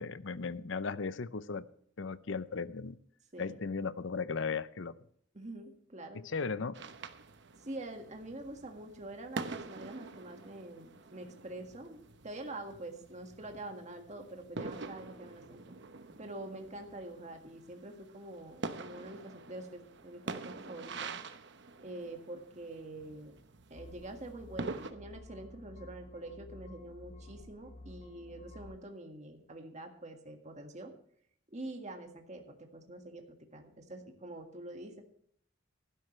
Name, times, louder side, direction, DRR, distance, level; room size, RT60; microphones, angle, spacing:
voice 1, 0.0-1.6 2.0-3.0 3.4-4.9 6.1-6.8, left 4 dB, 65° left, 15 dB, 0.6 m, -36 dB
voice 2, 5.3-6.2 7.6-15.8 16.2-21.1 21.8-23.3 23.7-30.9 31.5-35.0, right 2 dB, 35° right, 4 dB, 1.8 m, -46 dB
sound 1, 6.7-24.9, right 3 dB, 60° right, 1.0 m, -46 dB
sound 2, 23.7-28.8, left 2 dB, 35° left, 0.8 m, -52 dB
16.0 x 12.0 x 3.2 m, 0.64 s
head